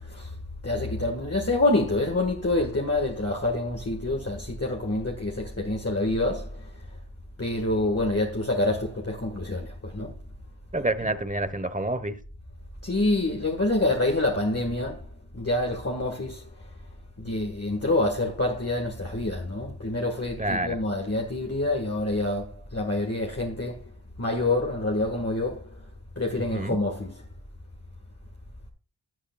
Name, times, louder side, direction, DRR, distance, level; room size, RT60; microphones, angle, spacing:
voice 1, 0.6-6.5 7.4-10.1 12.8-15.0 15.3-16.4 17.2-23.8 24.2-25.6 26.2-27.1, left 2 dB, 30° left, 1.7 m, -27 dB
voice 2, 10.7-12.2 20.4-20.8 26.5-26.8, right 2 dB, 15° right, 1.1 m, -28 dB
14.0 x 8.2 x 2.3 m
wide cardioid pair, 55°, 46 cm